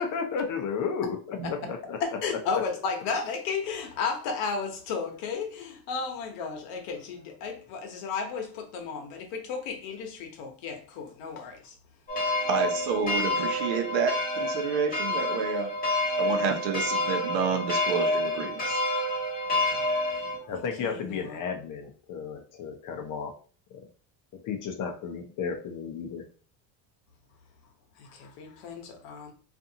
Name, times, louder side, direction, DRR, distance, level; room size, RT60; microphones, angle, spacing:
voice 1, 0.0-2.2 20.5-23.3 24.4-26.2, left 6 dB, 40° left, 0.6 m, -33 dB
voice 2, 2.0-11.7 12.1-12.4 13.2-13.3 19.5-21.4 28.0-29.3, left 5 dB, 75° left, 1.0 m, -34 dB
sound 1, 12.1-20.4, left 1 dB, 20° left, 0.9 m, -28 dB
voice 3, 12.5-15.7 16.2-18.8, right 6 dB, 60° right, 0.8 m, -29 dB
2.6 x 2.5 x 2.7 m
cardioid pair, 125°, 49 cm